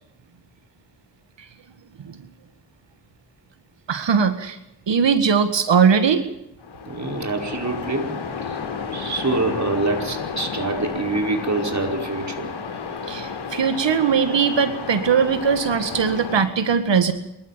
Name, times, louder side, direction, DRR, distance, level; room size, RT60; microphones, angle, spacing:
voice 1, 3.9-4.6 4.9-6.2 13.1-17.1, right 6 dB, 65° right, 10 dB, 1.8 m, -19 dB
Waves surf, 6.6-16.4, left 5 dB, 75° left, 4.7 m, -32 dB
voice 2, 6.9-8.1 8.4-8.6 8.9-12.5, right 3 dB, 35° right, 3 dB, 5.0 m, -25 dB
26.5 x 14.5 x 7.4 m, 0.85 s
cardioid pair, 45°, 46 cm